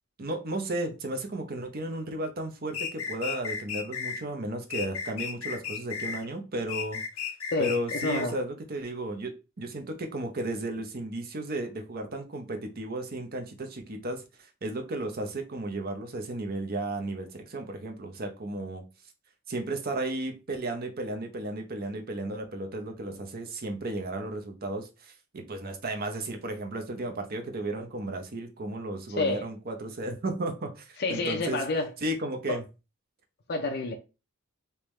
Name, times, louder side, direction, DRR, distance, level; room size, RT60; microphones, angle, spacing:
voice 1, 0.2-7.3 7.6-9.3 9.6-14.2 14.6-18.8 19.5-31.6 32.0-32.6, right 1 dB, 45° right, 0.7 m, -34 dB
sound 1, 2.7-4.2 4.7-6.2 6.7-8.3, left 6 dB, 80° left, 0.9 m, -34 dB
voice 2, 8.0-8.4 29.2-29.4 31.0-31.9 33.5-34.0, left 2 dB, 50° left, 0.5 m, -28 dB
3.5 x 2.8 x 3.1 m
head